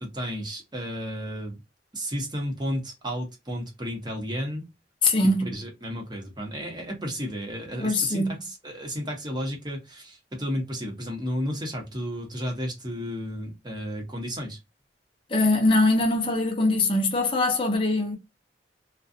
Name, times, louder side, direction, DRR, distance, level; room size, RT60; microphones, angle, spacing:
voice 1, 0.0-1.6 1.9-4.6 5.2-14.6, equal, 25° right, 0.9 m, -33 dB
voice 2, 5.0-5.5 7.8-8.3 15.3-18.2, left 2 dB, 30° left, 0.6 m, -22 dB
2.4 x 2.3 x 2.6 m
head